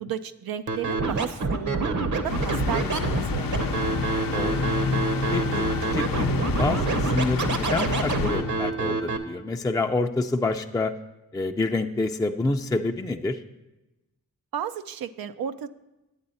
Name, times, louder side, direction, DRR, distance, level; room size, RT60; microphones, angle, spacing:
voice 1, 0.0-3.9 14.5-15.7, right 9 dB, 85° right, 11 dB, 0.5 m, -34 dB
Scratching (performance technique), 0.7-9.2, right 3 dB, 55° right, 0.9 m, -26 dB
sound 1, 2.3-9.0, left 5 dB, 70° left, 0.7 m, -29 dB
voice 2, 4.3-4.7 5.3-5.7 5.9-10.9 11.3-13.4, left 2 dB, 10° left, 5 dB, 0.4 m, -27 dB
8.9 x 8.5 x 4.1 m, 0.99 s
cardioid pair, 50°, 35 cm